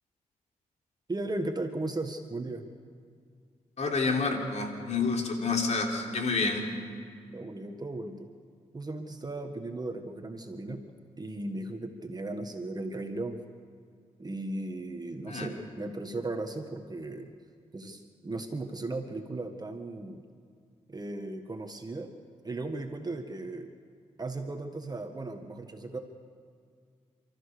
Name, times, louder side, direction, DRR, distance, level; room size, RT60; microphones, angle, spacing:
voice 1, 1.1-2.7 6.4-6.5 7.3-8.3 8.7-10.8 11.2-13.4 14.2-17.3 17.7-20.2 20.9-22.1 22.4-23.7 24.2-26.0, right 2 dB, 30° right, 5 dB, 1.7 m, -36 dB
voice 2, 3.8-6.6 15.3-15.5, left 4 dB, 60° left, 1 dB, 3.5 m, -28 dB
29.5 x 14.0 x 6.7 m, 2.1 s
cardioid pair, 55°, 13 cm